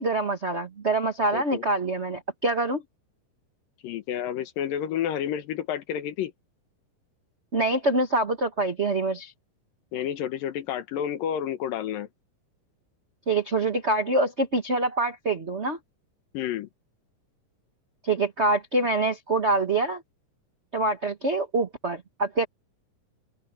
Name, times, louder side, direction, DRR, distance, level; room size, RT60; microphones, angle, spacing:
voice 1, 0.0-2.8 7.5-9.3 13.3-15.8 18.0-20.0 20.7-22.5, right 2 dB, 35° right, 1.0 m, -25 dB
voice 2, 1.3-1.6 3.8-6.3 9.9-12.1 16.3-16.7, left 10 dB, 90° left, 3.0 m, -30 dB
open air
omnidirectional pair, 3.8 m